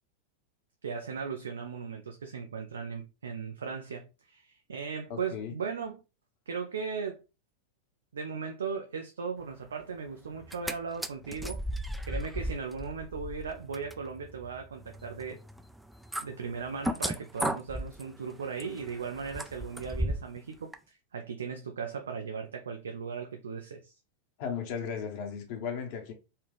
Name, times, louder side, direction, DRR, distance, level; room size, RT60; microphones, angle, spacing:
voice 1, 0.8-6.0 6.5-7.2 8.1-11.6 12.0-15.4 16.2-23.9, right 5 dB, 70° right, 0.5 m, -37 dB
voice 2, 5.1-5.5 24.4-26.1, left 7 dB, 50° left, 1.0 m, -36 dB
sound 1, 10.3-10.7 11.0-20.4 20.7-20.8, equal, 5° right, 0.4 m, -36 dB
4.1 x 2.4 x 3.4 m
figure-of-eight pair, 90°, 0 cm